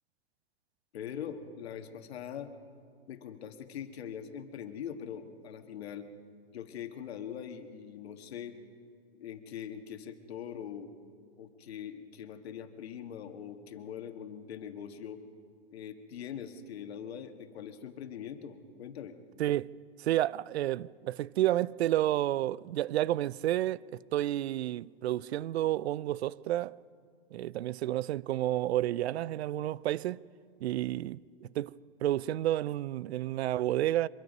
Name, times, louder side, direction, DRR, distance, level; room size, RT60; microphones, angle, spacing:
voice 1, 0.9-2.6 3.1-6.1 6.5-8.6 9.1-10.9 11.4-15.2 15.7-19.2, left 8 dB, 80° left, 1.8 m, -42 dB
voice 2, 19.4-19.7 20.0-26.8 27.3-30.2 30.6-31.7 32.0-34.1, right 14 dB, 90° right, 0.5 m, -30 dB
24.5 x 22.0 x 5.4 m
supercardioid pair, 145°, 31 cm